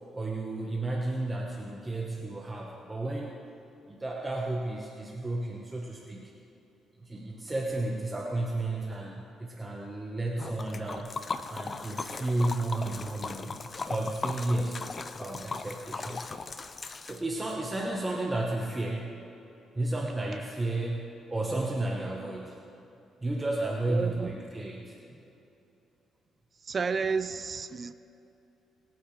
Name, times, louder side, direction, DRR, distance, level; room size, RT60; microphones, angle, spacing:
voice 1, 0.1-3.3 3.9-6.3 7.0-11.1 11.5-13.5 13.9-16.2 17.0-19.1 19.7-22.6 23.2-25.2, right 2 dB, 20° right, -2 dB, 1.3 m, -32 dB
Liquid, 10.4-17.6, left 4 dB, 35° left, 0.6 m, -38 dB
voice 2, 23.9-24.3 26.6-27.9, right 5 dB, 40° right, 13 dB, 0.5 m, -31 dB
24.0 x 9.1 x 3.4 m, 2.8 s
cardioid pair, 90°, 0 cm